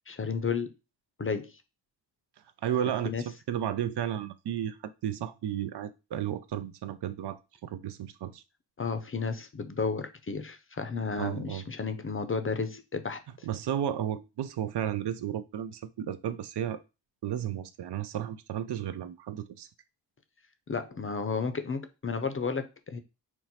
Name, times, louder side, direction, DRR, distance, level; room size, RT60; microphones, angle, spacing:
voice 1, 0.1-0.7 1.2-1.5 3.0-3.2 8.8-13.5 20.7-23.0, left 5 dB, 30° left, 0.6 m, -32 dB
voice 2, 2.6-8.4 11.2-11.6 13.4-16.8 17.2-19.7, right 10 dB, 70° right, 0.5 m, -33 dB
4.4 x 2.1 x 4.0 m
cardioid pair, 55°, 42 cm